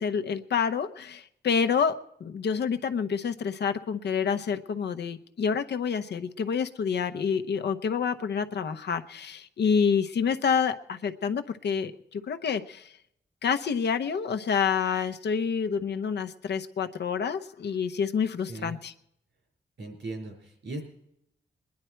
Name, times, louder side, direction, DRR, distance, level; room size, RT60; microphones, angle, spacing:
voice 1, 0.0-12.9 13.4-18.9, left 6 dB, 70° left, 9 dB, 0.8 m, -28 dB
voice 2, 19.8-20.8, right 2 dB, 80° right, 2 dB, 4.5 m, -38 dB
21.5 x 10.5 x 4.5 m, 0.76 s
wide cardioid pair, 170°, 18 cm